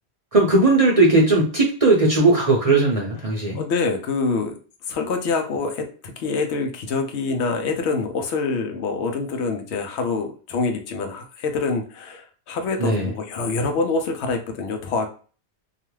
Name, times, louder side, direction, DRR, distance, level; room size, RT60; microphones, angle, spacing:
voice 1, 0.3-3.6 12.8-13.1, right 2 dB, 40° right, -2 dB, 0.6 m, -18 dB
voice 2, 3.5-4.6 4.9-15.1, left 4 dB, 75° left, 4 dB, 0.8 m, -25 dB
2.4 x 2.3 x 3.0 m, 0.39 s
omnidirectional pair, 1.2 m